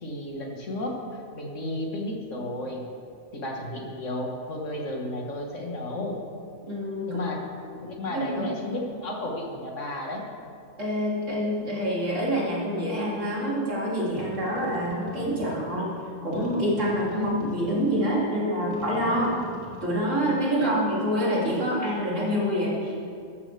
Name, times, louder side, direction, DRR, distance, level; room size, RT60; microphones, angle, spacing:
voice 1, 0.0-2.8 3.3-6.2 7.1-7.5 7.8-10.3 17.1-17.3 20.5-20.7, left 1 dB, 65° left, 0 dB, 1.9 m, -33 dB
voice 2, 6.7-7.3 8.1-8.7 10.8-15.9 16.2-19.4 19.8-22.9, equal, 70° right, -6 dB, 3.4 m, -26 dB
sound 1, 14.2-15.7 16.3-18.1 18.7-19.8, left 1 dB, 25° left, 2.5 m, -45 dB
14.0 x 13.0 x 3.4 m, 2.3 s
omnidirectional pair, 1.4 m